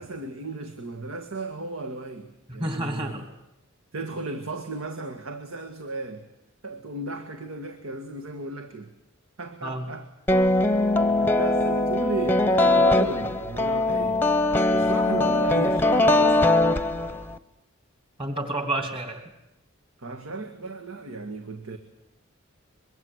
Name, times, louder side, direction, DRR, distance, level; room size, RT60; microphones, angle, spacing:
voice 1, 0.0-3.2 3.9-6.3 6.6-8.9 9.4-10.1 10.6-10.8 11.2-14.3 14.7-16.5 20.0-21.8, right 3 dB, 85° right, 6 dB, 1.7 m, -34 dB
voice 2, 2.5-3.3 9.6-9.9 18.2-19.2, right 1 dB, 25° right, 5 dB, 3.0 m, -30 dB
sound 1, 10.3-17.4, left 2 dB, 10° left, 0.8 m, -21 dB
24.0 x 22.5 x 8.1 m, 0.87 s
head